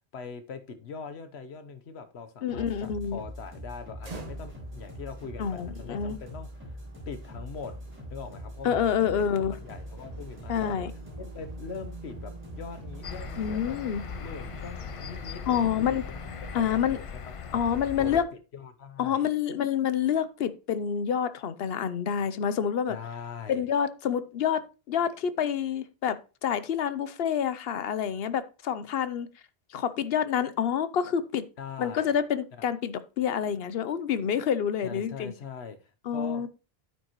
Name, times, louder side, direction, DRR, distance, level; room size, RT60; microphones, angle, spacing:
voice 1, 0.0-6.7 7.1-7.7 8.1-10.8 11.1-13.8 14.2-17.6 18.0-18.2 18.5-19.3 22.9-23.6 31.6-32.2 32.5-32.6 34.8-36.5, left 5 dB, 90° left, 1.2 m, -42 dB
voice 2, 2.4-3.2 5.4-6.2 8.6-9.5 10.5-10.9 13.4-14.0 15.5-16.0 16.5-17.0 17.5-18.2 19.0-23.0 23.5-29.3 29.7-31.4 31.8-35.3 36.1-36.5, left 8 dB, 70° left, 0.9 m, -28 dB
sound 1, 2.5-13.5, equal, 10° right, 4.8 m, -43 dB
sound 2, 4.0-17.0, right 3 dB, 40° right, 1.2 m, -48 dB
sound 3, 13.0-18.2, left 6 dB, 45° left, 0.5 m, -39 dB
9.2 x 9.2 x 3.0 m
omnidirectional pair, 1.0 m